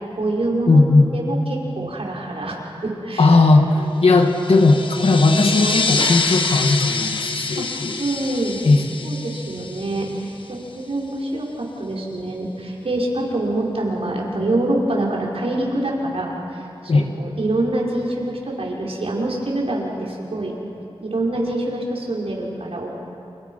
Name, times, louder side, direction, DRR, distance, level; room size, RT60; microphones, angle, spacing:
voice 1, 0.0-0.8 1.1-3.3 3.8-4.0 5.5-5.7 7.6-7.7 8.0-8.6 9.0-20.5 21.0-22.9, right 1 dB, 70° right, -3 dB, 5.8 m, -25 dB
voice 2, 0.7-1.1 3.2-8.0 8.6-9.1 16.9-17.1, left 3 dB, 70° left, 4 dB, 2.4 m, -16 dB
sound 1, 4.2-10.4, left 4 dB, 55° left, 1.7 m, -26 dB
30.0 x 29.0 x 5.9 m, 2.7 s
wide cardioid pair, 75°, 10 cm